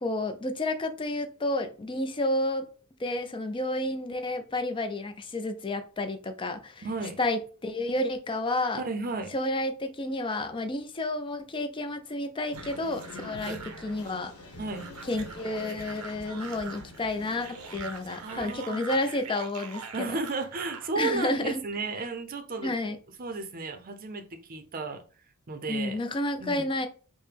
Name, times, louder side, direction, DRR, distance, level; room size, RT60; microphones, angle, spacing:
voice 1, 0.0-2.7 3.0-6.8 7.2-8.8 9.3-14.3 15.1-19.8 21.0-21.6 22.6-23.0 25.7-26.9, left 2 dB, 20° left, 0.4 m, -30 dB
voice 2, 6.8-7.2 8.7-9.3 13.4-13.6 14.6-14.9 18.2-18.8 19.9-22.7 23.2-25.0 25.5-26.0 26.4-26.7, right 3 dB, 40° right, 0.6 m, -34 dB
sound 1, 12.5-18.6, left 2 dB, 75° left, 1.0 m, -46 dB
sound 2, 12.5-20.9, right 5 dB, 90° right, 0.6 m, -44 dB
4.7 x 2.1 x 3.3 m
head